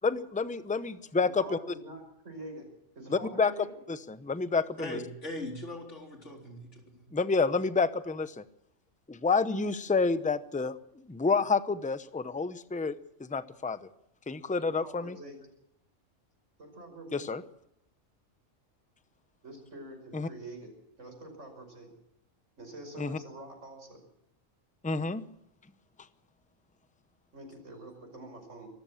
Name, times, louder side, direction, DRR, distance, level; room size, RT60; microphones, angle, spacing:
voice 1, 0.0-1.6 3.1-3.5 3.9-4.7 7.1-8.4 9.1-10.7 11.1-13.8 14.3-15.2 17.1-17.4 20.1-20.3 23.0-23.2 24.8-25.2, left 4 dB, 10° left, 13 dB, 0.5 m, -29 dB
voice 2, 1.4-2.7 3.0-3.8 14.3-15.4 16.6-17.3 19.4-20.7 21.0-21.9 22.6-24.0 27.3-28.7, right 1 dB, 65° right, 3 dB, 5.8 m, -46 dB
voice 3, 4.8-7.1, left 1 dB, 60° left, 1 dB, 4.2 m, -40 dB
24.5 x 14.5 x 7.4 m, 0.80 s
omnidirectional pair, 1.4 m